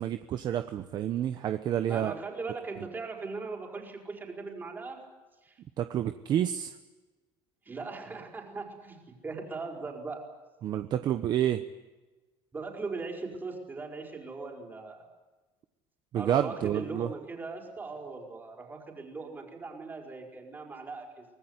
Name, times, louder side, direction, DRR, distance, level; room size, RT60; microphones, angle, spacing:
voice 1, 0.0-2.1 5.8-6.7 10.6-11.6 16.1-17.1, right 10 dB, 45° right, 9 dB, 1.0 m, -29 dB
voice 2, 1.9-5.0 5.4-5.6 7.6-9.0 9.2-10.3 12.5-15.0 16.1-21.3, right 3 dB, 20° right, 2 dB, 4.9 m, -39 dB
24.5 x 19.0 x 9.7 m, 1.2 s
cardioid pair, 150°, 10 cm